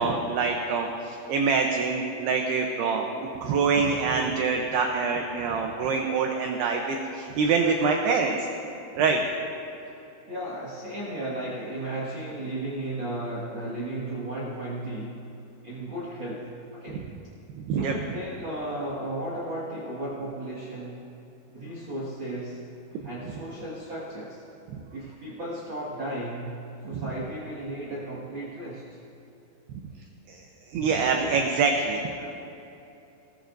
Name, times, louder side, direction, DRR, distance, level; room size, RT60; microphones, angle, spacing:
voice 1, 0.0-8.4 9.0-9.2 17.6-17.9 26.9-27.1 30.3-30.4 30.7-32.4, right 4 dB, 75° right, 2 dB, 2.6 m, -25 dB
voice 2, 10.3-15.3 15.6-17.0 17.7-21.0 21.5-22.6 23.0-24.5 24.9-29.0, right 1 dB, 55° right, -6 dB, 1.4 m, -35 dB
24.0 x 19.5 x 2.7 m, 2.9 s
omnidirectional pair, 5.4 m